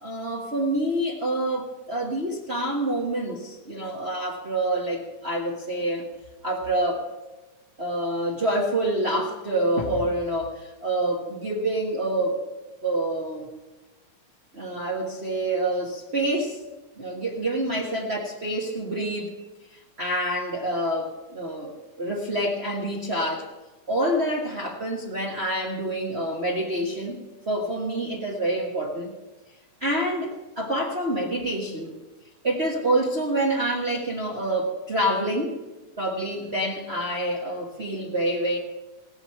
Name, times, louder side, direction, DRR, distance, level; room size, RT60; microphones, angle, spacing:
voice 1, 0.0-6.1 6.4-7.0 7.8-12.4 12.8-13.5 14.5-16.6 17.0-19.3 20.0-23.5 23.9-27.2 27.5-29.1 29.8-31.9 32.4-35.6 36.0-38.6, right 1 dB, 35° right, -2 dB, 1.1 m, -27 dB
18.5 x 8.0 x 5.7 m, 1.1 s
omnidirectional pair, 3.5 m